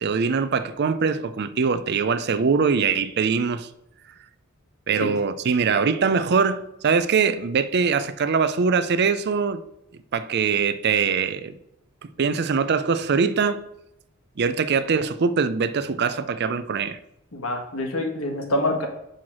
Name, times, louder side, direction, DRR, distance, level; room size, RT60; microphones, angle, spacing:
voice 1, 0.0-3.7 4.9-9.6 10.1-11.6 12.0-13.6 14.4-17.0, right 5 dB, 50° right, 0.5 m, -22 dB
voice 2, 17.3-18.9, left 1 dB, 70° left, 1.6 m, -26 dB
5.7 x 4.7 x 6.1 m
head